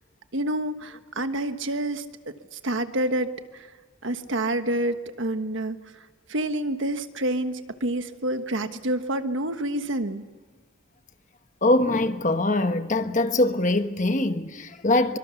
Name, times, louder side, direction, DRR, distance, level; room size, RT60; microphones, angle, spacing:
voice 1, 0.3-3.7 4.0-5.8 6.3-10.2, right 1 dB, 65° right, 1.4 m, -28 dB
voice 2, 11.6-15.2, left 2 dB, 35° left, 1.1 m, -23 dB
24.5 x 24.5 x 7.0 m
head